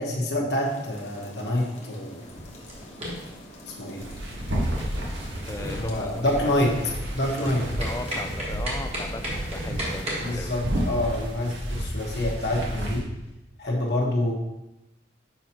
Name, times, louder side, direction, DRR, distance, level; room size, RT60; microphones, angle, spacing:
voice 1, 0.0-2.2 3.8-4.0 5.7-6.8 7.1-7.6 10.2-13.1 13.6-14.3, left 1 dB, 60° left, -1 dB, 1.3 m, -27 dB
sound 1, 0.6-10.1, left 1 dB, 35° left, 1.1 m, -45 dB
sound 2, 2.2-10.3, equal, 30° right, 1.4 m, -36 dB
sound 3, 4.0-13.0, equal, 75° right, 1.4 m, -31 dB
voice 2, 5.4-6.6 7.4-7.5 7.8-10.5, left 2 dB, 15° left, 6 dB, 0.3 m, -37 dB
7.1 x 5.6 x 2.9 m, 0.94 s
head